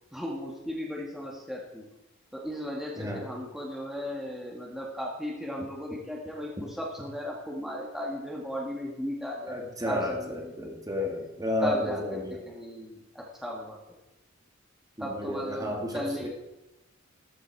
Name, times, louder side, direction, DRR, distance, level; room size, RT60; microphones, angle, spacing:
voice 1, 0.1-1.9 2.3-10.7 11.6-13.8 15.0-16.3, left 1 dB, ahead, -3 dB, 2.0 m, -36 dB
voice 2, 9.5-12.4 15.0-16.3, left 1 dB, 20° right, 0 dB, 2.2 m, -32 dB
14.5 x 14.0 x 4.8 m, 0.99 s
head